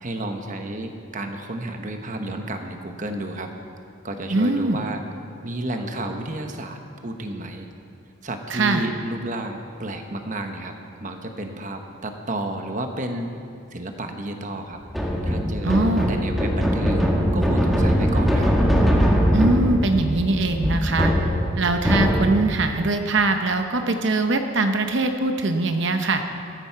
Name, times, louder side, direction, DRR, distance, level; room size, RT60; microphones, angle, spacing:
voice 1, 0.0-3.5 4.0-5.0 5.4-7.7 8.2-10.7 11.0-13.3 13.7-14.8 15.2-18.5, right 1 dB, 35° right, 5 dB, 1.1 m, -31 dB
voice 2, 4.3-4.8 8.5-8.9 15.6-16.1 19.3-21.1 21.6-26.2, right 2 dB, 60° right, 6 dB, 0.8 m, -22 dB
sound 1, 14.9-22.7, equal, ahead, 1.2 m, -21 dB
14.0 x 13.5 x 4.6 m, 2.4 s
head